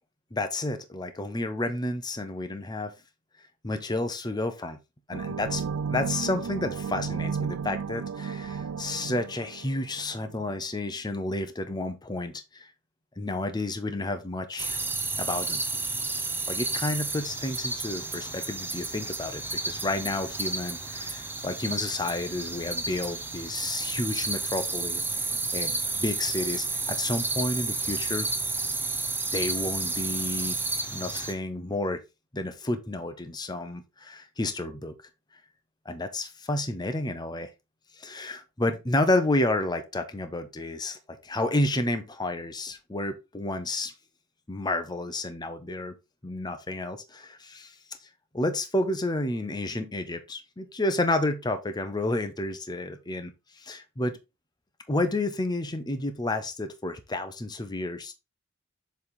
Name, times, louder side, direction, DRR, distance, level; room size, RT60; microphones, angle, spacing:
voice 1, 0.3-2.9 3.6-4.8 5.1-5.6 5.9-12.7 13.2-14.8 15.2-15.6 16.5-28.3 29.3-32.0 32.3-34.9 35.8-37.5 38.0-43.9 44.5-46.0 46.2-47.7 48.3-54.1 54.9-58.1, left 2 dB, 20° left, 0.8 m, -31 dB
sound 1, 5.1-10.5, right 6 dB, 80° right, 0.4 m, -33 dB
sound 2, 14.6-31.3, right 3 dB, 10° right, 0.8 m, -31 dB
7.2 x 3.5 x 4.0 m
head